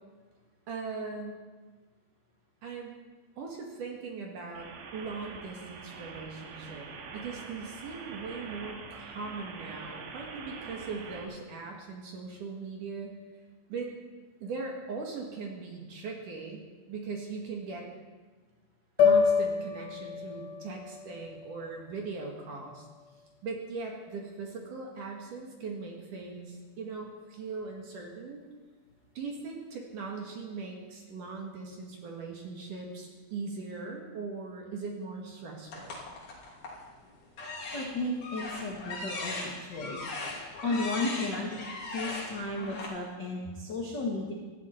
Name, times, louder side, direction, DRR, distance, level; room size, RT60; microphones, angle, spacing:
voice 1, 0.7-1.4 2.6-3.0 3.4-13.2 13.7-13.9 14.4-17.9 19.0-22.9 23.4-28.4 29.1-36.0, right 4 dB, 55° right, 0 dB, 2.7 m, -40 dB
sound 1, 4.6-11.2, right 5 dB, 80° right, 4.0 m, -44 dB
sound 2, 19.0-23.3, left 6 dB, 85° left, 3.8 m, -29 dB
sound 3, 35.7-36.8 37.3-42.9, left 2 dB, 45° left, 4.0 m, -39 dB
voice 2, 37.7-40.0 40.6-41.6 41.9-44.3, left 2 dB, 60° left, -2 dB, 1.1 m, -34 dB
18.5 x 15.0 x 4.5 m, 1.4 s
omnidirectional pair, 5.3 m